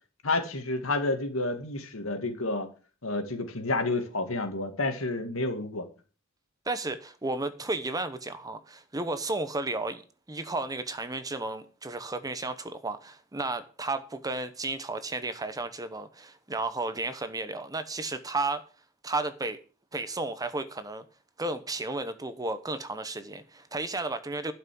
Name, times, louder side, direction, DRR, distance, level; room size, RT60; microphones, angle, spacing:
voice 1, 0.2-2.7 3.0-5.8, left 2 dB, 75° left, 2.2 m, -30 dB
voice 2, 6.7-10.0 10.3-18.7 19.0-19.6 19.9-21.0 21.4-24.5, right 2 dB, 20° right, 0.9 m, -33 dB
12.0 x 5.8 x 7.6 m
head